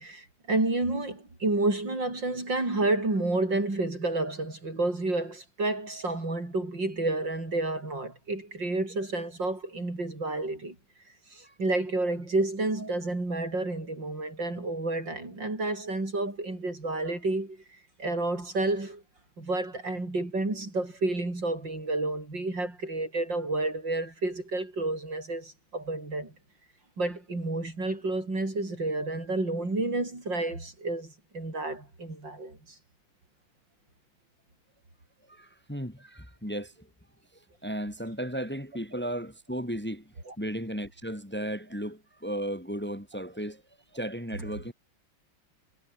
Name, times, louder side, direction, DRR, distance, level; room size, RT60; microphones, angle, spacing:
voice 1, 0.0-10.8 11.3-17.6 18.0-19.0 19.4-26.3 27.0-32.6 40.3-40.4, right 2 dB, 65° right, 7.7 m, -30 dB
voice 2, 35.3-36.9 37.6-43.6 43.9-44.7, equal, 5° left, 3.5 m, -35 dB
omnidirectional pair, 2.2 m